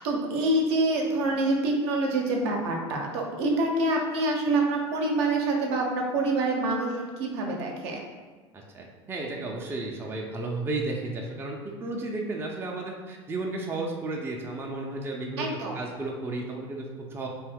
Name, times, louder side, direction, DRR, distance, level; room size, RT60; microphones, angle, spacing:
voice 1, 0.0-8.0 15.4-15.8, right 2 dB, 65° right, 0 dB, 0.6 m, -26 dB
voice 2, 8.5-17.3, right 2 dB, 15° right, -1 dB, 0.4 m, -33 dB
2.6 x 2.3 x 3.4 m, 1.3 s
figure-of-eight pair, 75°, 15 cm